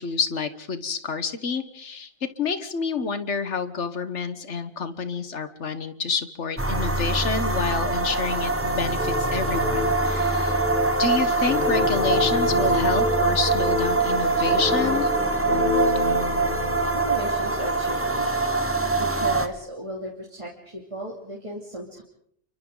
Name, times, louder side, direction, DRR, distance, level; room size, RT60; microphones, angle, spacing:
voice 1, 0.0-2.1 2.4-10.6 11.0-15.1, left 5 dB, 80° left, 11 dB, 1.6 m, -28 dB
sound 1, 6.6-19.5, right 3 dB, 10° right, 1.2 m, -24 dB
sound 2, 9.0-18.0, left 3 dB, 60° left, 5.9 m, -29 dB
voice 2, 16.9-18.3 19.0-22.0, equal, 25° right, -3 dB, 3.0 m, -36 dB
29.0 x 24.0 x 3.9 m, 0.67 s
omnidirectional pair, 1.2 m